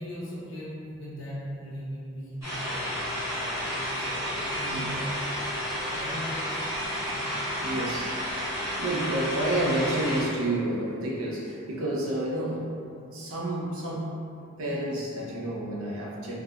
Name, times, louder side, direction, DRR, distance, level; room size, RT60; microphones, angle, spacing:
voice 1, 0.0-7.4 12.9-13.2, equal, 65° left, -8 dB, 0.8 m, -39 dB
sound 1, 2.4-10.2, equal, 15° right, 0.8 m, -31 dB
voice 2, 7.6-12.7 13.1-14.2 14.6-16.4, right 1 dB, 80° right, -3 dB, 0.5 m, -30 dB
3.3 x 2.1 x 2.3 m, 2.5 s
head